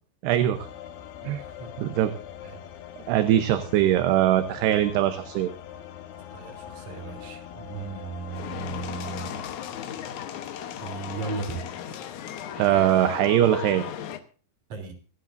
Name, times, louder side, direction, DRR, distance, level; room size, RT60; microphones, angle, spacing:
voice 1, 0.2-0.7 1.3-1.4 1.8-2.1 3.1-5.5 12.6-13.8, right 12 dB, 75° right, 9 dB, 2.8 m, -22 dB
sound 1, 0.5-9.6, left 10 dB, 70° left, 2.7 m, -42 dB
voice 2, 1.6-2.1 2.4-2.6 6.3-9.4 10.8-11.6 14.7-14.9, right 4 dB, 45° right, 4 dB, 4.1 m, -36 dB
sound 2, 8.3-14.2, left 9 dB, 85° left, 1.7 m, -36 dB
26.5 x 10.5 x 2.6 m, 0.39 s
omnidirectional pair, 5.2 m